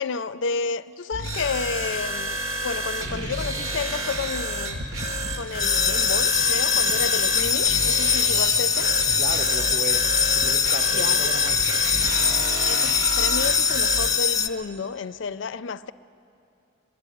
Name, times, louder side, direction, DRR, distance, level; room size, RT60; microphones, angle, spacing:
voice 1, 0.0-4.8 5.4-8.9 10.9-11.3 12.7-15.9, left 5 dB, 65° left, 0.4 m, -31 dB
sound 1, 1.1-14.2, right 1 dB, 85° right, 2.0 m, -30 dB
sound 2, 4.7-12.1, equal, 70° right, 1.4 m, -42 dB
sound 3, 5.6-14.5, left 7 dB, 15° left, 0.6 m, -22 dB
voice 2, 9.2-10.1 10.3-11.8, right 2 dB, 35° right, 0.8 m, -34 dB
22.5 x 12.5 x 9.9 m
head